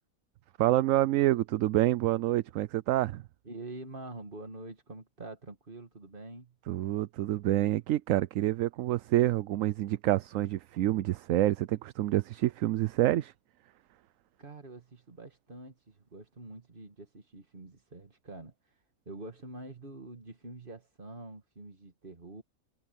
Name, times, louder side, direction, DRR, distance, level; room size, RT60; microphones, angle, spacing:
voice 1, 0.6-3.2 6.7-13.3, right 14 dB, 70° right, 0.9 m, -27 dB
voice 2, 3.4-6.6 14.4-18.5 19.1-22.4, right 2 dB, 35° right, 2.3 m, -46 dB
omnidirectional pair, 1.5 m